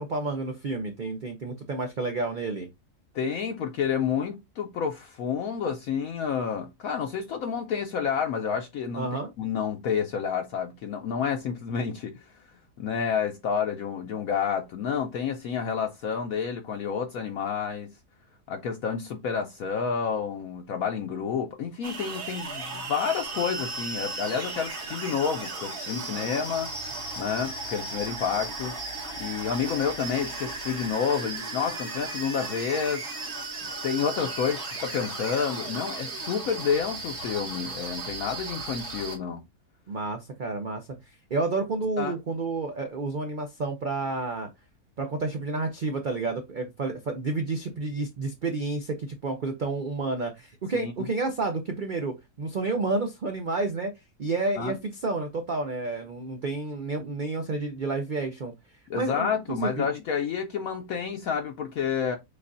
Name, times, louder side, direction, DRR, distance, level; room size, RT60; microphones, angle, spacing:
voice 1, 0.0-2.7 9.0-9.3 39.9-44.5 45.0-53.9 54.2-58.5 58.9-59.9, right 3 dB, 70° right, 0.4 m, -30 dB
voice 2, 3.1-9.1 9.4-12.2 12.8-17.9 18.5-26.7 27.2-28.8 29.2-33.1 33.6-39.4 42.0-42.1 50.7-50.9 54.6-54.7 58.9-62.2, left 7 dB, 70° left, 1.0 m, -29 dB
sound 1, 21.8-39.2, right 3 dB, 45° right, 1.6 m, -35 dB
6.5 x 2.4 x 2.5 m
omnidirectional pair, 1.7 m